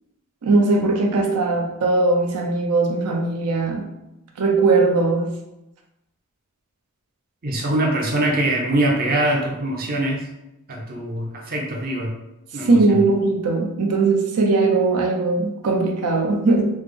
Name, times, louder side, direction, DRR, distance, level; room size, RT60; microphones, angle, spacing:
voice 1, 0.4-3.8 4.4-5.3 12.6-16.7, right 3 dB, 90° right, 2 dB, 0.5 m, -19 dB
voice 2, 7.4-10.2 10.7-12.2 12.5-13.0, right 1 dB, 40° right, 0 dB, 0.5 m, -23 dB
3.3 x 2.0 x 3.3 m, 0.92 s
head